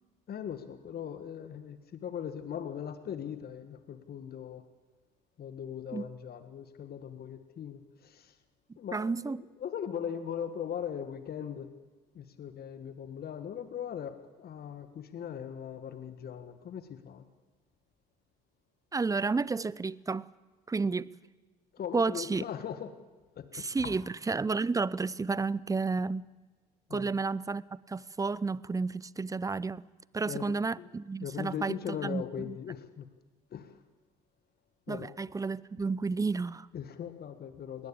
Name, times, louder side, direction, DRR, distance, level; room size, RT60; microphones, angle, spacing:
voice 1, 0.3-4.6 5.4-8.3 8.8-11.7 12.1-14.1 14.4-17.2 21.7-23.0 23.4-23.9 26.9-27.1 30.3-30.9 31.2-33.1 33.5-33.7 34.9-35.1 36.7-37.9, left 8 dB, 50° left, 1.7 m, -39 dB
voice 2, 8.9-9.4 18.9-20.3 20.7-21.1 21.9-22.4 23.5-26.3 26.9-29.9 30.1-32.6 34.9-36.7, right 4 dB, 15° right, 0.6 m, -31 dB
19.5 x 17.0 x 8.6 m
hypercardioid pair, 60°, 21 cm